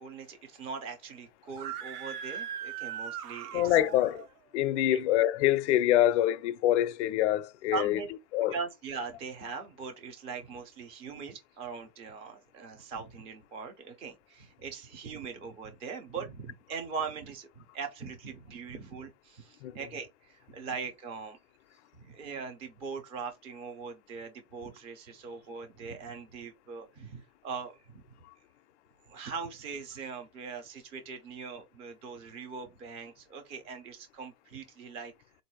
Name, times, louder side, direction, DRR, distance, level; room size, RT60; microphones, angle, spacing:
voice 1, 0.0-3.8 4.9-5.0 7.7-8.1 8.5-21.4 21.9-28.0 29.1-35.1, right 5 dB, 15° right, 0.5 m, -41 dB
Screaming, 1.5-4.3, right 9 dB, 75° right, 0.9 m, -39 dB
voice 2, 3.5-4.3 4.5-8.0 8.3-8.6 19.6-19.8, left 13 dB, 50° left, 0.5 m, -25 dB
4.0 x 2.6 x 4.4 m
hypercardioid pair, 140°, 46 cm